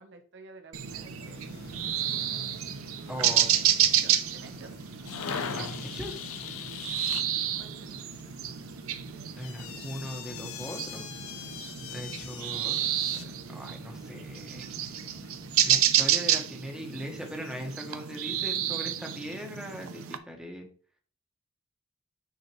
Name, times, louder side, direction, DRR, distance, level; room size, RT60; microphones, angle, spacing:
voice 1, 0.0-1.4 3.0-4.8 7.6-8.0, right 3 dB, 55° right, 5 dB, 0.8 m, -52 dB
sound 1, 0.7-20.2, right 11 dB, 85° right, 0.6 m, -30 dB
Accelerating revving vroom, 0.8-15.8, left 1 dB, 60° left, 2.0 m, -49 dB
voice 2, 3.1-3.5 5.5-6.2 9.3-11.1 11.9-12.8 13.1-14.7 15.6-20.7, equal, 5° right, 1 dB, 1.3 m, -40 dB
sound 2, 5.1-7.2 9.4-13.2, left 7 dB, 85° left, 0.6 m, -39 dB
9.2 x 4.4 x 3.1 m, 0.44 s
head